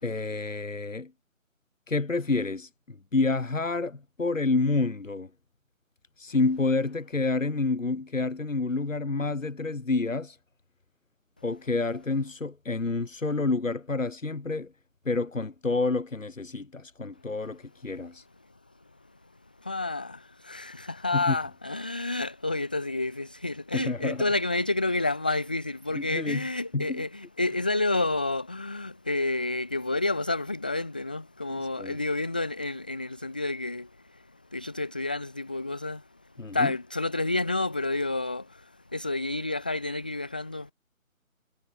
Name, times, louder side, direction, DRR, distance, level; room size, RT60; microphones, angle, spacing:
voice 1, 0.0-1.1 1.9-5.3 6.2-10.4 11.4-14.7 15.0-18.2 21.1-21.3 23.7-24.3 25.9-26.4 26.7-27.0 31.6-32.0 36.4-36.7, left 3 dB, 65° left, 4.7 m, -29 dB
voice 2, 19.6-36.1 36.5-40.7, left 2 dB, 5° left, 1.1 m, -30 dB
figure-of-eight pair, 165°, 42 cm